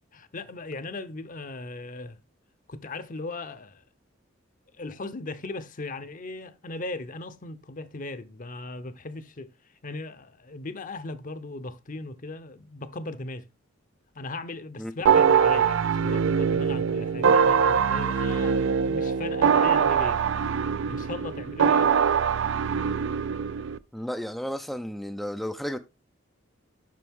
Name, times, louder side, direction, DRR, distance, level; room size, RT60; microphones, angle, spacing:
voice 1, 0.1-2.2 2.7-3.8 4.7-9.5 9.8-13.5 14.1-20.2 20.9-21.9, left 2 dB, 45° left, 0.7 m, -38 dB
sound 1, 15.1-23.8, right 7 dB, 70° right, 0.4 m, -23 dB
voice 2, 23.9-25.8, equal, ahead, 0.3 m, -33 dB
7.6 x 6.1 x 3.5 m
head